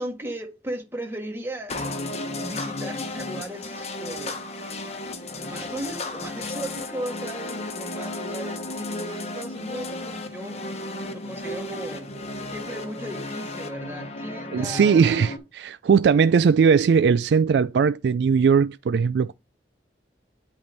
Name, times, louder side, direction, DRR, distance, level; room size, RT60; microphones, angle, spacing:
voice 1, 0.0-2.0 2.3-4.5 5.4-10.6 11.1-12.1 12.5-15.0, right 1 dB, 15° right, 1.8 m, -36 dB
sound 1, 1.7-15.4, left 2 dB, 35° left, 1.0 m, -34 dB
voice 2, 14.5-19.3, right 6 dB, 75° right, 0.3 m, -19 dB
10.5 x 3.7 x 4.0 m
head